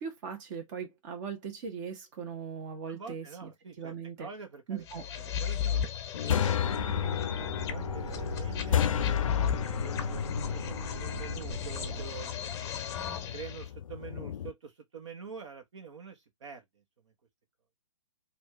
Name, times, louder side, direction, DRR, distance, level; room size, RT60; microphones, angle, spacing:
voice 1, 0.0-3.5 3.8-4.3 4.7-5.0, right 6 dB, 35° right, 1.5 m, -39 dB
voice 2, 2.9-5.9 6.2-6.4 6.7-7.2 7.6-8.9 9.6-12.4 13.3-16.6 17.0-17.1, right 6 dB, 60° right, 1.5 m, -46 dB
sound 1, 4.9-13.7, left 8 dB, 15° left, 0.8 m, -36 dB
sound 2, 5.9-14.5, left 9 dB, 80° left, 0.4 m, -33 dB
sound 3, 6.3-12.1, right 8 dB, 75° right, 0.4 m, -42 dB
4.9 x 2.8 x 3.7 m
hypercardioid pair, 145°, 17 cm